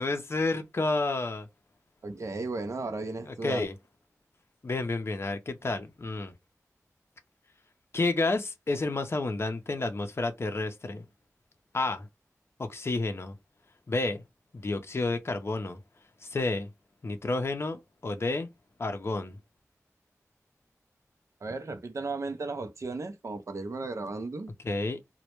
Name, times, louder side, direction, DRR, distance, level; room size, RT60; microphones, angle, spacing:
voice 1, 0.0-1.5 3.2-3.7 4.6-6.3 7.9-11.0 11.7-12.1 12.6-13.3 13.9-14.2 14.5-15.8 16.2-16.7 17.0-18.5 18.8-19.4 24.6-25.0, left 2 dB, 50° left, 0.5 m, -30 dB
voice 2, 2.0-3.6 21.4-24.5, right 3 dB, 65° right, 0.5 m, -35 dB
2.1 x 2.1 x 2.9 m
wide cardioid pair, 80°, 6 cm